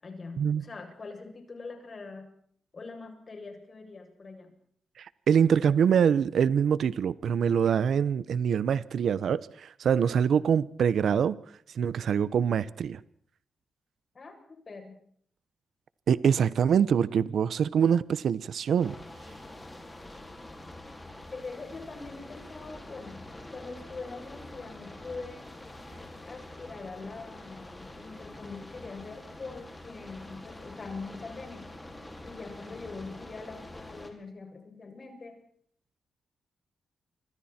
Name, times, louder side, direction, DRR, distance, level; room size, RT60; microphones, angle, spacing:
voice 1, 0.0-2.3 2.7-4.6 14.1-15.0 21.3-23.3 23.5-25.5 26.3-31.7 32.2-35.4, left 3 dB, 35° left, 7.7 m, -43 dB
voice 2, 5.0-11.4 11.7-13.0 16.1-19.0, right 7 dB, 70° right, 1.0 m, -24 dB
sound 1, 18.8-34.1, left 1 dB, 15° left, 5.0 m, -46 dB
29.0 x 25.5 x 4.4 m
cardioid pair, 115°, 0 cm